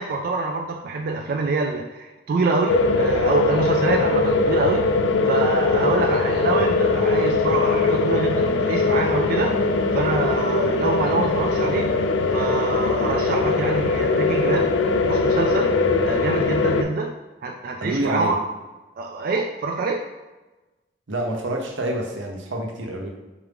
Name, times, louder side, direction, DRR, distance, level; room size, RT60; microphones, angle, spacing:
voice 1, 0.0-4.9 5.3-9.6 9.9-11.9 12.3-14.7 15.1-15.7 16.1-17.1 17.4-18.4 19.0-20.0, right 3 dB, 50° right, 1 dB, 0.3 m, -25 dB
sound 1, 2.7-16.8, left 3 dB, 75° left, 0.4 m, -21 dB
voice 2, 17.8-18.4 21.1-23.1, right 1 dB, 90° right, 2 dB, 0.7 m, -27 dB
4.5 x 2.4 x 3.4 m, 1.1 s
head